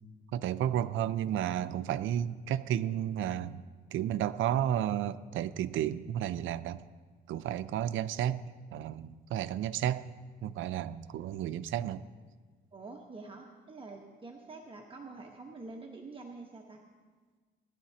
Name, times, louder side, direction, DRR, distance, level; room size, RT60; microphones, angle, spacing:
voice 1, 0.3-3.6 3.9-6.9 7.3-8.4 8.7-10.1 10.4-12.1, right 11 dB, 75° right, 13 dB, 0.5 m, -32 dB
voice 2, 12.7-16.8, right 3 dB, 25° right, 1 dB, 1.2 m, -46 dB
19.5 x 11.5 x 2.9 m, 1.4 s
cardioid pair, 90°, 20 cm